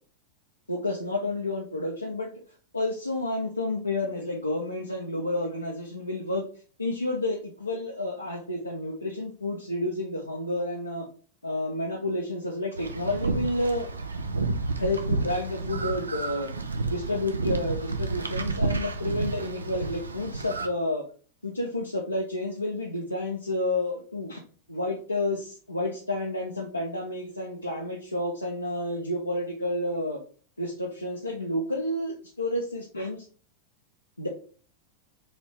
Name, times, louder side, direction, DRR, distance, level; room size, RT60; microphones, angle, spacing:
voice 1, 0.7-2.3 2.7-6.4 6.8-11.1 11.4-13.9 14.7-16.5 16.9-21.0 21.4-24.4 24.7-30.2 30.6-33.3 34.2-34.3, left 1 dB, 85° left, -2 dB, 0.6 m, -30 dB
sound 1, 12.8-20.7, right 3 dB, 75° right, 0.4 m, -30 dB
4.0 x 2.8 x 3.4 m, 0.41 s
figure-of-eight pair, 90°, 0 cm